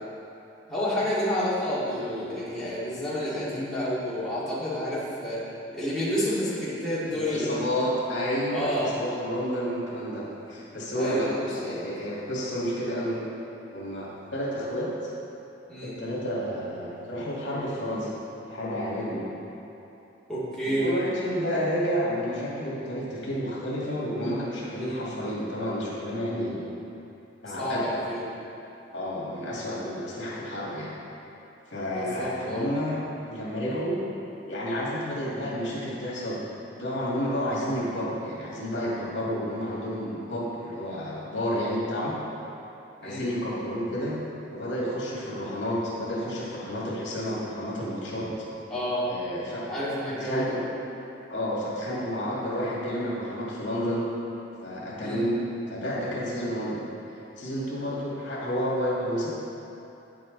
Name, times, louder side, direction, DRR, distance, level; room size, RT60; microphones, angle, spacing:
voice 1, 0.7-5.4 5.7-7.5 8.5-8.9 11.0-11.8 15.7-16.0 20.3-20.9 24.8-25.0 27.5-28.3 31.9-32.7 43.0-43.3 48.7-49.1 49.7-50.6 55.0-55.2, equal, 5° left, -11 dB, 2.1 m, -29 dB
voice 2, 6.7-13.2 13.7-14.9 15.8-18.1 18.5-19.3 20.6-26.7 27.4-27.9 28.9-30.9 31.7-33.0 33.3-34.0 34.5-36.4 36.7-42.2 43.0-44.2 44.5-48.3 49.1-49.7 50.1-50.7 51.3-54.1 54.6-55.4 55.7-56.8 57.4-59.3, equal, 70° left, -6 dB, 2.1 m, -30 dB
9.3 x 7.6 x 3.9 m, 3.0 s
head